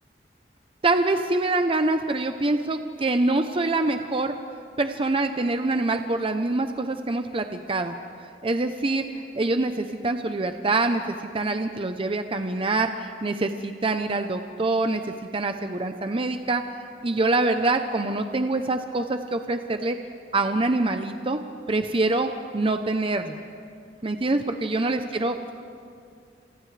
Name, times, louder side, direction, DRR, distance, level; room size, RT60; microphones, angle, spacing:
voice 1, 0.8-4.4 4.8-8.0 8.4-11.0 11.3-15.0 15.3-16.6 17.0-20.0 20.3-21.4 21.7-23.4 24.0-25.5, right 2 dB, 30° right, 7 dB, 0.7 m, -25 dB
29.5 x 27.0 x 3.3 m, 2.3 s
head